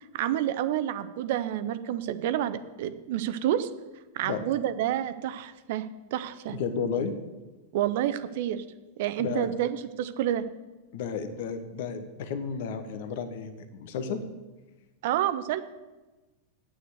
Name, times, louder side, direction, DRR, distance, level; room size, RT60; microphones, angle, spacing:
voice 1, 0.1-3.7 4.1-5.9 6.1-6.6 7.7-8.6 9.0-10.4 15.0-15.6, right 11 dB, 50° right, 12 dB, 0.7 m, -29 dB
voice 2, 6.5-7.1 9.2-9.5 10.9-14.2, left 6 dB, 50° left, 10 dB, 1.1 m, -32 dB
9.4 x 8.8 x 7.8 m, 1.1 s
figure-of-eight pair, 90°, 0 cm